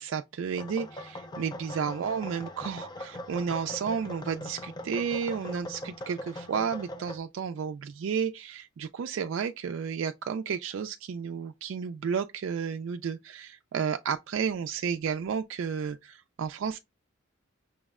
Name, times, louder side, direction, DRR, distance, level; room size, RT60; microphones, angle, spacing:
voice 1, 0.0-16.8, right 6 dB, 65° right, 0.3 m, -32 dB
sound 1, 0.5-7.2, left 1 dB, 20° left, 0.4 m, -41 dB
5.7 x 2.1 x 3.5 m
head